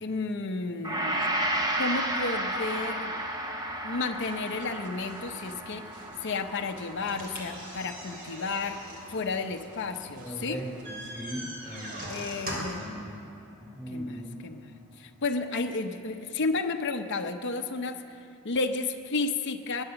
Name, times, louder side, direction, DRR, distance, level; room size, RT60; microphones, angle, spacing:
voice 1, 0.0-1.3 1.5-3.2 3.8-5.9 6.2-8.8 9.1-10.6 12.1-12.9 13.9-14.7 15.0-18.0 18.4-19.8, left 3 dB, 55° left, 5 dB, 0.8 m, -32 dB
Gong, 0.8-9.3 9.6-9.8, right 1 dB, 20° right, 1.1 m, -33 dB
sound 1, 4.1-10.9, right 2 dB, 80° right, 1.6 m, -52 dB
sound 2, 7.0-12.9, right 1 dB, 45° right, 3.6 m, -41 dB
voice 2, 10.2-12.5 12.8-13.2 13.6-14.4, equal, ahead, -3 dB, 4.2 m, -39 dB
19.5 x 9.8 x 7.0 m, 2.7 s
head